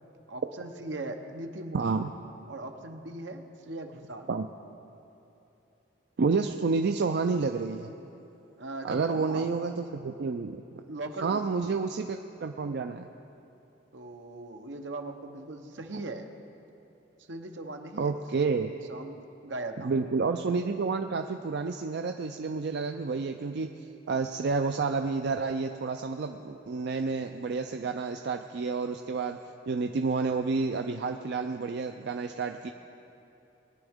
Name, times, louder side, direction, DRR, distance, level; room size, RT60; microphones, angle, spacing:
voice 1, 0.3-2.0 2.5-4.3 8.6-9.5 10.9-11.5 13.9-16.3 17.3-18.2 18.9-19.9, right 2 dB, 85° right, 5 dB, 0.9 m, -39 dB
voice 2, 1.7-2.1 4.3-4.5 6.2-7.9 8.8-10.6 11.2-13.1 18.0-18.7 19.8-23.7 24.1-29.4 29.7-32.7, right 4 dB, 65° right, 6 dB, 0.4 m, -29 dB
21.0 x 9.8 x 3.6 m, 2.9 s
head